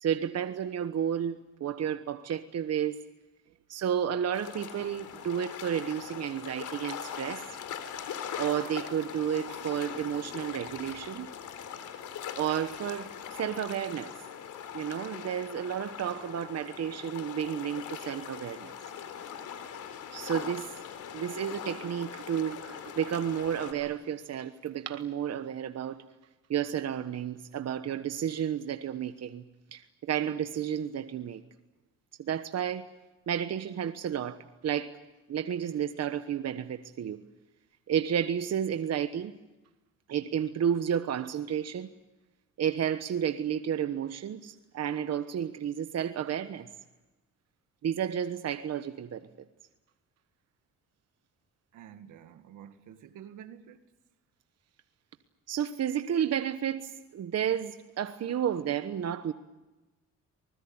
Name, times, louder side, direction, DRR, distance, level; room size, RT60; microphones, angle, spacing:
voice 1, 0.0-3.0 3.7-7.6 8.4-11.3 12.4-14.1 14.7-18.8 20.1-20.8 21.1-26.0 26.5-29.4 29.7-31.4 32.2-32.9 33.3-35.0 35.3-37.2 37.9-39.4 40.1-41.9 42.6-46.7 47.8-49.3 55.5-59.3, right 9 dB, 55° right, 1.2 m, -32 dB
sound 1, 4.3-23.7, left 8 dB, 80° left, 3.6 m, -41 dB
voice 2, 51.7-53.8, right 9 dB, 80° right, 1.9 m, -49 dB
25.0 x 20.5 x 8.8 m
cardioid pair, 90°, 30 cm